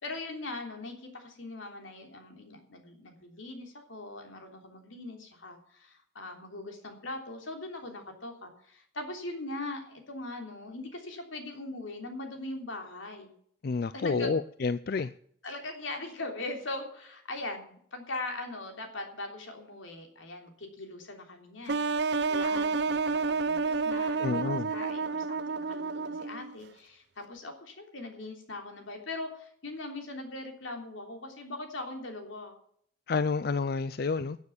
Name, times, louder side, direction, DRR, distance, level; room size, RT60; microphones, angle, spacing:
voice 1, 0.0-13.3 13.9-14.4 15.4-21.9 22.3-32.6, left 2 dB, 90° left, 4 dB, 3.3 m, -41 dB
voice 2, 13.6-15.1 24.2-24.7 33.1-34.4, left 4 dB, 50° left, 14 dB, 0.4 m, -29 dB
sound 1, 21.7-26.5, right 4 dB, 60° right, 0.6 m, -30 dB
13.0 x 7.3 x 8.5 m, 0.64 s
head